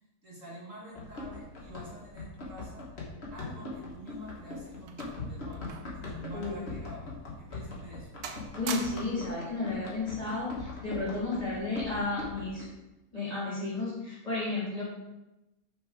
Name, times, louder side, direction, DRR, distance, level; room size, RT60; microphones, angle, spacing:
voice 1, 0.2-2.8 3.3-8.2, right 1 dB, 55° right, -5 dB, 2.1 m, -47 dB
Run, 0.9-12.6, left 2 dB, 45° left, 1.7 m, -41 dB
sound 1, 3.9-6.0 6.3-6.5 7.1-7.3 7.7-8.0 8.2-9.3 10.3-10.6, right 6 dB, 75° right, 1.3 m, -42 dB
voice 2, 6.3-6.6 8.6-12.7 13.1-14.8, left 3 dB, 25° left, -8 dB, 3.1 m, -33 dB
6.3 x 5.4 x 5.0 m, 0.95 s
omnidirectional pair, 1.6 m